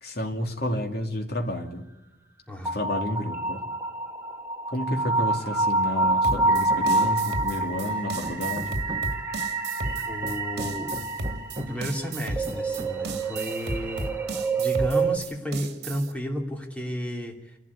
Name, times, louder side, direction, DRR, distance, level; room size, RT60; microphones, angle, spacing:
voice 1, 0.0-1.8 2.7-3.6 4.7-8.8, left 1 dB, 55° left, 3 dB, 2.7 m, -30 dB
sound 1, 2.6-15.2, right 3 dB, 10° right, 1.5 m, -27 dB
Hammer, 6.0-7.4 7.8-9.2 9.9-11.9 12.5-13.4, right 1 dB, 25° right, 1.5 m, -39 dB
sound 2, 6.2-16.1, right 2 dB, 60° right, 2.6 m, -34 dB
voice 2, 7.6-8.0 10.0-10.9 11.6-14.1 14.6-17.6, equal, 5° left, 1 dB, 2.9 m, -33 dB
29.0 x 12.0 x 9.6 m, 0.96 s
head